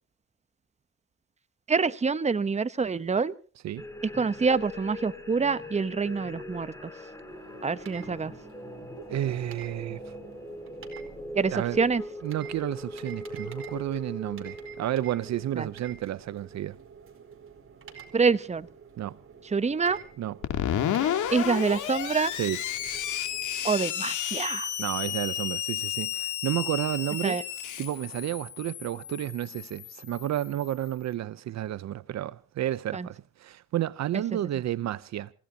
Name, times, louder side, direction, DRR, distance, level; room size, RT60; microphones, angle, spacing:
voice 1, 1.7-3.3 4.2-6.7 7.6-8.3 11.3-12.0 15.6-15.7 18.1-18.7 19.5-20.0 21.3-22.3 23.6-24.7 27.2-27.4 32.9-33.1, right 5 dB, 20° right, 0.9 m, -26 dB
sound 1, 3.8-16.5, left 1 dB, 10° left, 5.0 m, -41 dB
sound 2, 7.3-23.7, right 6 dB, 45° right, 4.3 m, -49 dB
voice 2, 9.0-10.1 11.5-11.8 12.2-16.8 19.0-19.2 20.2-20.4 22.3-22.6 24.8-27.4 27.8-35.3, right 13 dB, 65° right, 0.7 m, -31 dB
Screech, 20.4-30.9, left 11 dB, 80° left, 2.9 m, -32 dB
27.5 x 16.5 x 2.8 m
cardioid pair, 90°, 30 cm